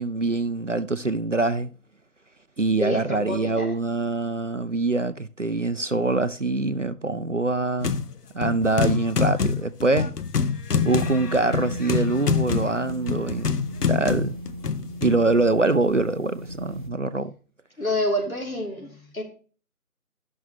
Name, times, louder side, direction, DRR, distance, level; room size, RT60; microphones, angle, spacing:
voice 1, 0.0-1.7 2.6-8.1 8.3-10.2 10.8-14.3 15.0-17.3, right 3 dB, 55° right, 0.5 m, -24 dB
voice 2, 2.8-3.7 17.8-19.2, left 1 dB, 65° left, 3.0 m, -28 dB
sound 1, 7.8-8.1 8.4-15.2, left 6 dB, 90° left, 0.7 m, -26 dB
sound 2, 10.7-16.9, equal, 35° right, 0.9 m, -36 dB
10.5 x 6.2 x 3.0 m
figure-of-eight pair, 170°, 45 cm